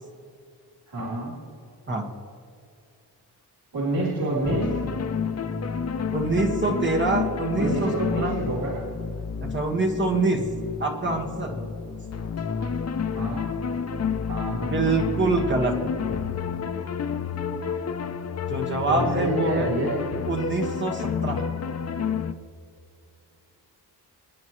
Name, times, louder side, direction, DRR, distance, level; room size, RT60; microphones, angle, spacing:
voice 1, 0.9-1.3 3.7-4.7 7.6-8.8 13.1-13.5 14.2-14.7 18.9-20.0, right 1 dB, 75° right, -8 dB, 3.6 m, -27 dB
sound 1, 4.4-22.3, left 6 dB, 40° left, 0.6 m, -30 dB
voice 2, 6.1-7.9 8.2-8.3 9.4-10.4 10.8-11.7 14.7-15.7 18.5-19.7 20.3-21.4, right 3 dB, 30° right, 1 dB, 1.6 m, -25 dB
26.0 x 9.6 x 3.1 m, 2.4 s
wide cardioid pair, 180°, 40 cm